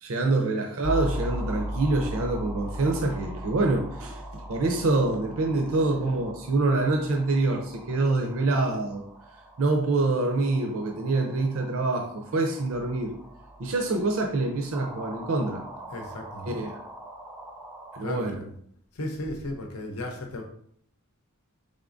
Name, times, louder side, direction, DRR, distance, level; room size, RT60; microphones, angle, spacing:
voice 1, 0.0-9.0 9.6-13.1 13.6-15.6 16.5-16.8 17.9-18.4, right 2 dB, 65° right, 3 dB, 0.5 m, -26 dB
sound 1, 0.8-18.0, equal, 5° right, 0.4 m, -39 dB
voice 2, 15.9-16.6 18.0-18.4 18.9-20.4, left 1 dB, 85° left, 3 dB, 0.7 m, -35 dB
3.9 x 3.6 x 2.5 m, 0.65 s
head